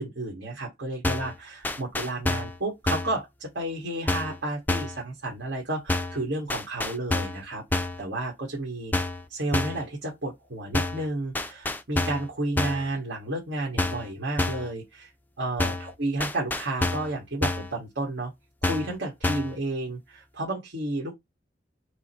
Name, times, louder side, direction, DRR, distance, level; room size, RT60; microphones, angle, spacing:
voice 1, 0.0-8.9 9.3-15.1 15.4-18.3 18.6-21.2, right 2 dB, 70° right, 1.5 m, -32 dB
sound 1, 1.0-1.4 1.6-2.6 2.9-3.2 4.1-4.4 4.7-5.0 5.9-6.2 6.5-7.4 7.7-8.0 8.9-9.2 9.5-9.9 10.7-11.1 11.3-12.3 12.6-12.9 13.8-14.1 14.4-14.7 15.6-15.9 16.2-17.1 17.4-17.7 18.6-19.0 19.2-19.6, left 2 dB, 10° left, 0.4 m, -28 dB
4.8 x 2.1 x 4.4 m
head